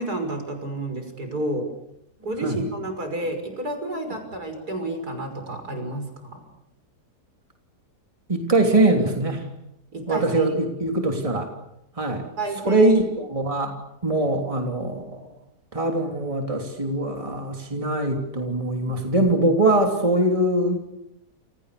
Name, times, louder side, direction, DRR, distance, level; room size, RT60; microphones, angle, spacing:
voice 1, 0.0-1.7 2.2-6.4 9.9-10.4 12.1-13.0 13.6-13.7, right 1 dB, 70° right, 6 dB, 6.5 m, -30 dB
voice 2, 8.3-9.5 10.1-11.5 12.0-12.2 12.7-13.7 14.0-15.3 15.7-20.8, right 2 dB, 20° right, 3 dB, 3.3 m, -22 dB
30.0 x 28.5 x 6.8 m, 0.85 s
omnidirectional pair, 1.7 m